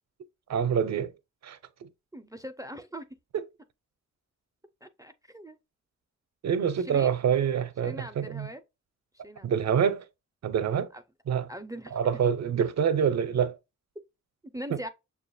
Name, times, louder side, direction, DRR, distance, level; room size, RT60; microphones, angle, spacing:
voice 1, 0.5-1.1 1.4-1.9 3.3-3.4 6.4-8.5 9.4-10.0 10.4-10.9 11.3-11.5 11.9-13.6, right 7 dB, 65° right, 0.5 m, -26 dB
voice 2, 2.1-3.1 4.8-5.6 6.8-7.1 7.8-8.6 9.2-9.8 10.9-11.0 11.5-12.0 14.5-14.9, equal, 10° right, 0.4 m, -41 dB
6.7 x 2.3 x 2.6 m
wide cardioid pair, 95°, 30 cm